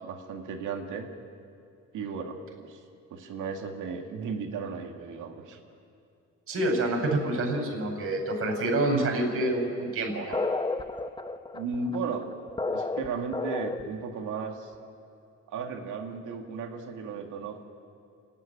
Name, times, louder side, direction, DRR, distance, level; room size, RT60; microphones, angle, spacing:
voice 1, 0.0-1.1 1.9-2.8 3.1-5.6 11.5-12.4 12.7-14.7 15.5-17.7, right 5 dB, 85° right, 3 dB, 2.2 m, -35 dB
voice 2, 6.5-10.4, right 2 dB, 45° right, 0 dB, 5.3 m, -27 dB
sound 1, 10.3-14.0, left 3 dB, 15° left, 0.9 m, -31 dB
29.0 x 10.0 x 10.0 m, 2.4 s
cardioid pair, 90°, 30 cm